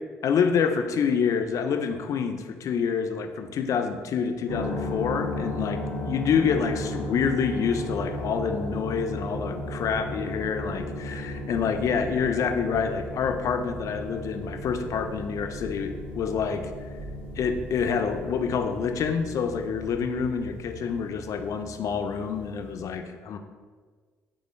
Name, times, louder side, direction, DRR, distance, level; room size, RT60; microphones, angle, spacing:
voice 1, 0.2-5.8 6.1-16.7 17.4-23.4, left 6 dB, 50° left, 7 dB, 0.3 m, -27 dB
sound 1, 4.5-22.8, left 1 dB, 90° right, 0.9 m, -35 dB
3.6 x 3.1 x 2.5 m, 1.5 s
hypercardioid pair, 50°, 7 cm